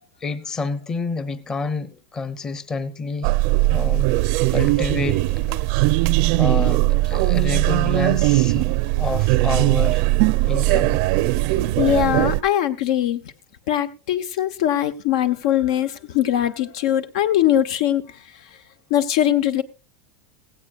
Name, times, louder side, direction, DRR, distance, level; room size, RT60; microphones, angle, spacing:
voice 1, 0.2-3.3 3.7-5.6 6.4-8.7 9.0-10.0 10.5-11.0, left 4 dB, 20° left, 0.9 m, -29 dB
sound 1, 3.2-12.4, right 18 dB, 60° right, 0.6 m, -19 dB
voice 2, 11.8-13.2 13.7-18.0 18.9-19.6, left 11 dB, 75° left, 1.1 m, -21 dB
17.0 x 16.0 x 2.5 m
supercardioid pair, 150°, 3 cm